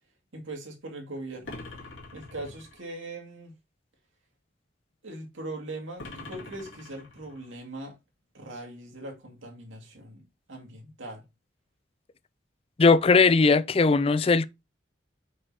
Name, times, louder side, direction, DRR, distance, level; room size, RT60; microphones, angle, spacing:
voice 1, 0.3-1.6 2.1-3.5 5.0-8.0 8.3-11.2, right 2 dB, 90° right, 2.3 m, -40 dB
sound 1, 1.4-2.9 6.0-7.5, left 2 dB, 80° left, 2.0 m, -44 dB
voice 2, 12.8-14.5, left 4 dB, 30° left, 0.4 m, -19 dB
8.2 x 5.5 x 2.8 m
head